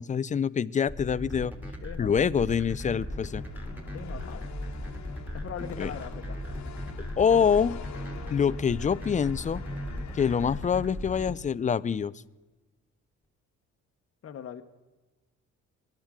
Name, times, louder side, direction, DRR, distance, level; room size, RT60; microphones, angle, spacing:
voice 1, 0.0-1.5 2.0-3.4 5.8-5.9 7.2-7.8 8.3-9.6 10.1-12.1, left 7 dB, 25° left, 19 dB, 0.4 m, -25 dB
sound 1, 0.9-11.3, equal, 5° right, 2.6 m, -37 dB
voice 2, 1.8-2.3 3.9-4.5 5.3-6.4 14.2-14.6, left 8 dB, 50° left, 5 dB, 1.0 m, -40 dB
sound 2, 2.5-11.2, left 8 dB, 65° left, 1.2 m, -47 dB
20.5 x 12.0 x 3.7 m, 1.2 s
cardioid pair, 90°, 30 cm